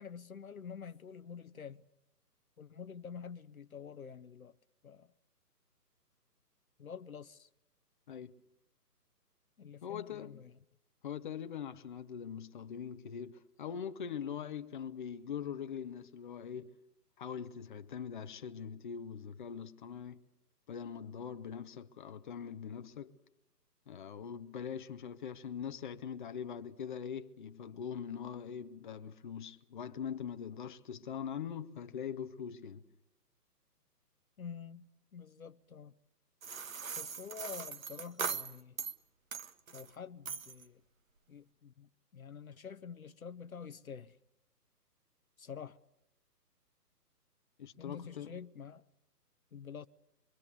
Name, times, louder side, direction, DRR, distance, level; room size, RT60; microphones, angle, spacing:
voice 1, 0.0-1.8 2.6-4.6 4.8-5.1 6.8-7.5 9.6-10.5 34.4-35.9 37.0-38.8 39.7-40.8 41.3-44.2 45.4-45.8 47.8-48.8 49.5-49.9, left 6 dB, 60° left, 1.0 m, -48 dB
voice 2, 9.8-10.4 11.0-16.7 17.2-20.2 20.7-23.1 23.9-32.8 47.6-48.4, left 7 dB, 30° left, 1.1 m, -42 dB
sound 1, 36.4-39.0 39.3-39.9 40.2-40.6, right 6 dB, 55° right, 1.8 m, -40 dB
25.5 x 24.0 x 6.9 m
figure-of-eight pair, 140°, 49 cm